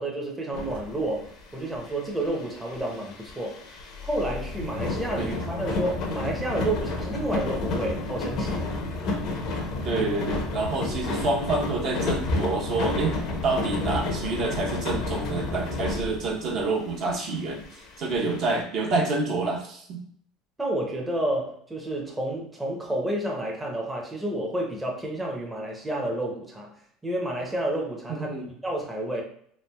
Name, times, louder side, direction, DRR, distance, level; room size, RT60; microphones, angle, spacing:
voice 1, 0.0-3.6 4.0-8.7 20.6-26.7 27.0-28.3 28.6-29.2, right 1 dB, 10° right, -2 dB, 0.6 m, -30 dB
sound 1, 0.5-1.3 1.6-16.6 17.1-17.2 17.5-18.6, left 2 dB, 60° left, 0.6 m, -31 dB
voice 2, 9.8-13.2 13.4-20.0 28.1-28.5, right 3 dB, 55° right, -1 dB, 0.8 m, -28 dB
3.1 x 2.3 x 2.2 m, 0.64 s
supercardioid pair, 105°, 0 cm